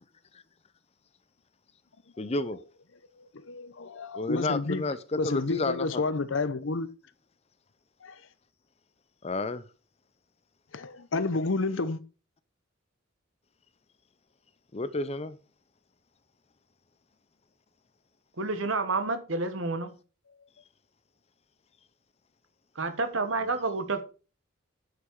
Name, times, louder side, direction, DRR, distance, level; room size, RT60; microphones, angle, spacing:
voice 1, 2.2-2.6 4.1-5.0 5.2-6.0 9.2-9.6 14.7-15.4, left 2 dB, 30° left, 0.6 m, -31 dB
voice 2, 3.2-4.8 5.1-6.9 8.0-8.2 10.7-12.0, left 3 dB, 60° left, 0.7 m, -30 dB
voice 3, 18.4-19.9 22.7-24.0, right 3 dB, 65° right, 1.3 m, -29 dB
9.6 x 5.9 x 4.7 m
head